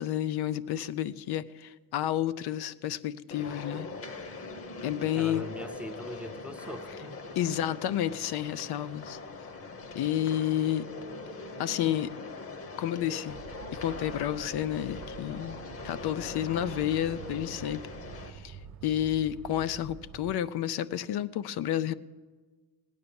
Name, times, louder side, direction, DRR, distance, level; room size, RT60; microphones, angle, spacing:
voice 1, 0.0-3.9 4.8-5.4 7.4-9.2 9.9-10.9 11.6-12.1 12.8-13.4 13.7-17.8 18.3-18.6 18.8-21.9, left 11 dB, 90° left, 15 dB, 0.6 m, -30 dB
sound 1, 3.3-18.3, left 3 dB, 35° left, 1.0 m, -42 dB
voice 2, 5.0-7.2, equal, 5° right, 9 dB, 0.5 m, -41 dB
sound 2, 13.3-20.4, right 7 dB, 50° right, 1.0 m, -46 dB
17.0 x 9.6 x 7.0 m, 1.4 s
cardioid pair, 180°, 37 cm